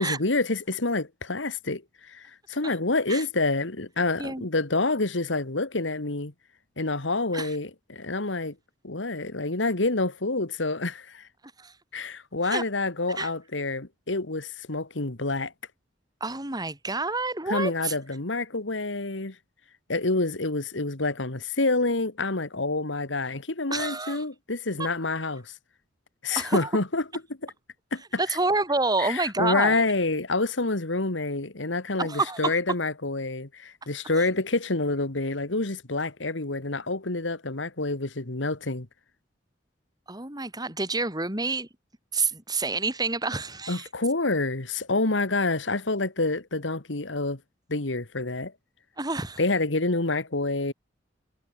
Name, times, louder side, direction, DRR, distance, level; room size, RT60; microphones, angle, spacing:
voice 1, 0.0-1.8 2.1-6.3 6.8-8.6 8.8-11.3 11.9-15.5 17.5-19.4 19.9-25.5 26.2-27.0 27.4-27.5 27.9-28.0 29.0-38.9 43.7-47.4 47.7-48.5 49.4-50.7, left 2 dB, 85° left, 2.1 m, -27 dB
voice 2, 16.2-17.9 23.7-24.2 24.8-24.9 26.3-26.7 28.2-29.8 32.0-32.5 34.2-34.3 40.1-41.7 42.1-43.9 49.0-49.4, right 3 dB, 20° right, 7.6 m, -28 dB
head